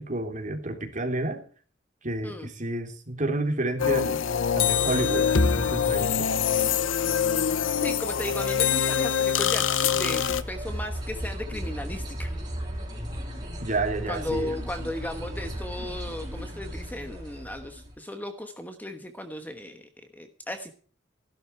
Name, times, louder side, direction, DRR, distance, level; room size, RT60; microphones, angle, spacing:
voice 1, 0.0-1.4 2.0-4.2 4.5-6.3 13.6-14.5, right 2 dB, 40° right, 4 dB, 3.3 m, -30 dB
sound 1, 3.8-10.4, left 7 dB, 80° left, 0.9 m, -24 dB
voice 2, 7.5-12.3 14.1-19.8 20.1-20.7, left 1 dB, 10° left, 7 dB, 1.2 m, -36 dB
sound 2, 10.2-17.9, equal, 20° right, 5.5 m, -35 dB
16.0 x 12.0 x 4.6 m, 0.43 s
head